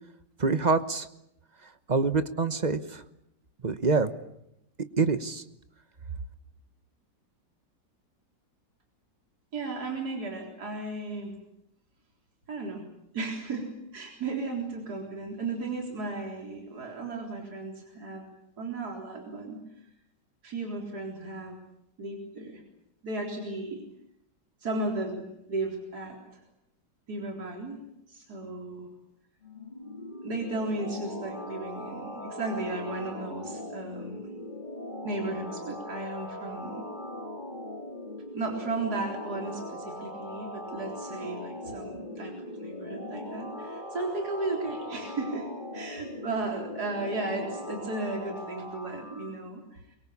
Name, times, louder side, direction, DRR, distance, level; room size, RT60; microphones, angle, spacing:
voice 1, 0.4-1.1 1.9-3.0 3.6-4.1 5.0-5.4, right 4 dB, 30° right, 11 dB, 1.1 m, -25 dB
voice 2, 9.5-11.4 12.5-12.9 13.1-18.2 18.6-19.6 20.4-21.6 22.0-22.6 23.0-23.8 24.6-26.2 27.1-27.8 28.1-28.9 30.2-34.2 35.0-36.9 38.3-42.3 42.6-45.5 45.7-49.8, right 2 dB, 60° right, 1 dB, 4.5 m, -35 dB
sound 1, 29.4-49.3, left 1 dB, 25° left, 2.4 m, -40 dB
23.5 x 23.0 x 8.6 m, 0.78 s
omnidirectional pair, 1.9 m